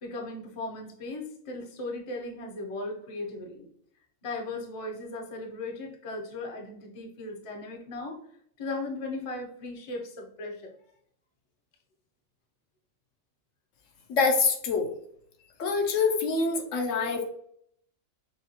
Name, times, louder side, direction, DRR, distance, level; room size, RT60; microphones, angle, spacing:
voice 1, 0.0-3.7 4.2-8.2 8.6-10.7, left 2 dB, 35° left, 2 dB, 0.6 m, -37 dB
voice 2, 14.1-14.9 15.6-17.2, left 4 dB, 70° left, 3 dB, 1.0 m, -25 dB
6.6 x 2.3 x 2.9 m, 0.68 s
omnidirectional pair, 1.4 m